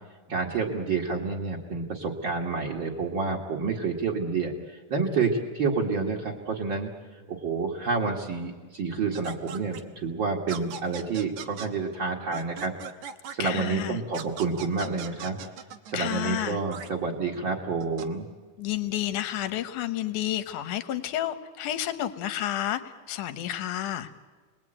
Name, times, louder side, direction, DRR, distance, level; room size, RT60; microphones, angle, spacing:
voice 1, 0.3-6.9 7.3-12.7 13.3-15.4 15.9-18.3, right 4 dB, 40° right, -2 dB, 2.4 m, -29 dB
sound 1, 9.1-9.8 10.5-11.7 12.3-13.5 14.1-16.0 16.7-16.9 17.8-18.1, right 8 dB, 70° right, 2.4 m, -39 dB
voice 2, 13.4-14.0 15.9-16.6 18.6-24.1, left 12 dB, 75° left, 11 dB, 2.5 m, -30 dB
29.5 x 21.0 x 9.0 m, 1.4 s
omnidirectional pair, 3.7 m